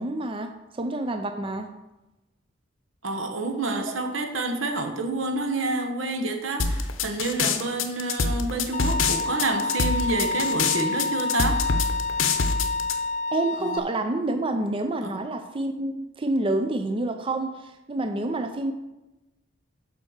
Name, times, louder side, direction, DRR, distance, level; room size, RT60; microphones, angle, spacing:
voice 1, 0.0-1.7 13.3-18.7, right 2 dB, 25° right, 6 dB, 0.5 m, -28 dB
voice 2, 3.0-11.7 13.6-13.8 15.0-15.1, right 2 dB, 75° right, 5 dB, 1.2 m, -28 dB
sound 1, 6.6-12.9, left 4 dB, 80° left, 0.8 m, -25 dB
Bowed string instrument, 8.7-13.8, left 3 dB, 40° left, 0.4 m, -28 dB
7.4 x 5.3 x 6.5 m, 1.0 s
head